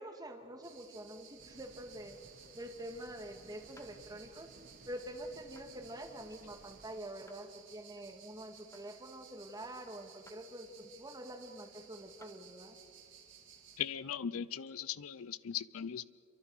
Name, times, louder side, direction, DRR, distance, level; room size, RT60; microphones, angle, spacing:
voice 1, 0.0-2.2 2.5-4.6 4.9-12.8, right 1 dB, 20° right, 5 dB, 1.8 m, -46 dB
sound 1, 0.6-13.8, right 7 dB, 60° right, 2.4 m, -58 dB
sound 2, 1.4-7.0, right 2 dB, 45° right, 1.0 m, -61 dB
sound 3, 3.8-4.0 5.5-5.7 7.3-7.4 8.7-9.0 10.3-10.4 11.5-11.6 12.2-12.4 13.8-13.9, left 2 dB, 15° left, 1.2 m, -59 dB
voice 2, 13.8-16.0, left 9 dB, 80° left, 18 dB, 0.5 m, -39 dB
28.0 x 24.0 x 4.8 m, 2.3 s
head